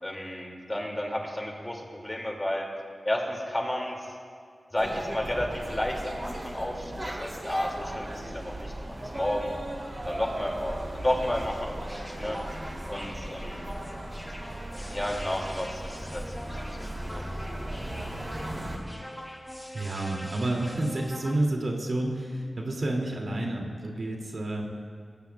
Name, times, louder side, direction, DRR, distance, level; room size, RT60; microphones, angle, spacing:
voice 1, 0.0-2.7 3.0-4.1 4.7-9.6 10.1-12.4 12.9-13.6 14.9-17.2 18.0-18.1, left 1 dB, 20° left, 0 dB, 2.3 m, -32 dB
sound 1, 4.8-18.8, right 1 dB, 35° right, 2.7 m, -37 dB
sound 2, 11.9-21.4, equal, 5° left, 1.4 m, -43 dB
voice 2, 19.7-24.7, right 1 dB, 60° right, -1 dB, 2.4 m, -30 dB
21.0 x 20.0 x 2.3 m, 2.2 s
wide cardioid pair, 85°, 0 cm